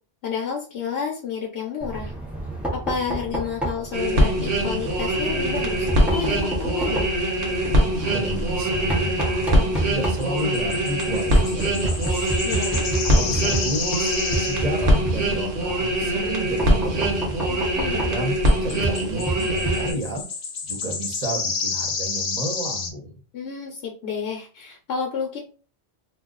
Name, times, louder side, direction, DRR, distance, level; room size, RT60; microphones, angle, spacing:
voice 1, 0.2-2.1 2.7-7.1 12.4-12.8 17.5-18.1 23.3-25.4, left 6 dB, 75° left, 0 dB, 0.9 m, -30 dB
Knock, 1.8-20.2, right 2 dB, ahead, 0.6 m, -30 dB
sound 1, 3.9-19.9, equal, 60° right, 1.0 m, -23 dB
sound 2, 6.1-6.3 10.2-14.9 15.2-15.3 16.3-16.4 17.8-17.9 18.4-22.9, left 5 dB, 50° left, 0.6 m, -30 dB
voice 2, 8.0-12.4 13.1-17.3 17.9-20.2 20.6-23.2, right 1 dB, 40° right, 1 dB, 0.9 m, -32 dB
2.3 x 2.3 x 3.7 m, 0.37 s
omnidirectional pair, 1.1 m